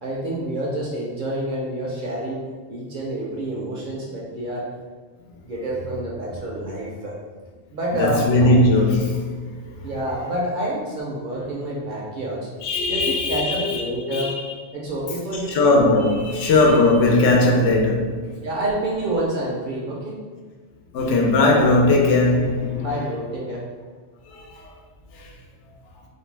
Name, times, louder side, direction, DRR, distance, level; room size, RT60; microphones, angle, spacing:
voice 1, 0.0-2.4 2.7-4.6 5.4-7.1 7.7-8.5 9.8-12.5 12.9-14.3 14.7-15.6 17.4-17.6 18.4-20.2 22.8-23.6, right 1 dB, 55° right, -4 dB, 0.6 m, -28 dB
voice 2, 8.0-9.3 12.6-14.3 15.5-18.3 20.9-22.9 24.3-24.7 25.1-25.3, left 2 dB, 85° left, -1 dB, 0.9 m, -19 dB
2.5 x 2.1 x 3.1 m, 1.5 s
omnidirectional pair, 1.2 m